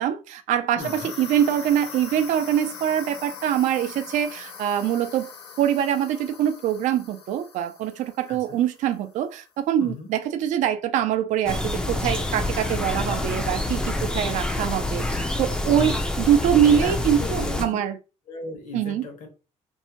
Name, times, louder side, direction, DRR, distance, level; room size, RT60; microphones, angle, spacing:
voice 1, 0.0-5.3 5.6-15.9 16.3-18.0 18.7-19.0, right 10 dB, 70° right, 0.4 m, -24 dB
voice 2, 0.8-1.1 8.3-8.6 9.8-10.1 15.7-16.0 16.7-17.8 18.3-19.3, left 3 dB, 70° left, 0.9 m, -36 dB
sound 1, 0.8-9.0, left 6 dB, 50° left, 0.6 m, -41 dB
sound 2, 11.5-17.7, left 2 dB, 5° left, 0.3 m, -27 dB
2.6 x 2.1 x 2.8 m
cardioid pair, 150°, 13 cm